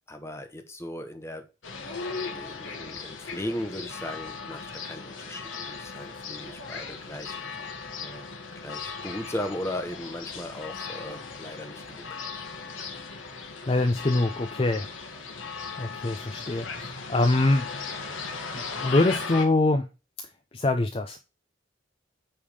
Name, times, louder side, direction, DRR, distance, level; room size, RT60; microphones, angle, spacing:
voice 1, 0.1-1.4 2.2-7.4 8.0-12.2, left 1 dB, 15° left, 1.0 m, -37 dB
sound 1, 1.6-19.4, left 4 dB, 75° left, 1.6 m, -37 dB
voice 2, 13.7-14.9 15.8-17.7 18.5-19.8 20.5-21.2, left 2 dB, 30° left, 0.5 m, -24 dB
8.6 x 3.6 x 4.8 m
head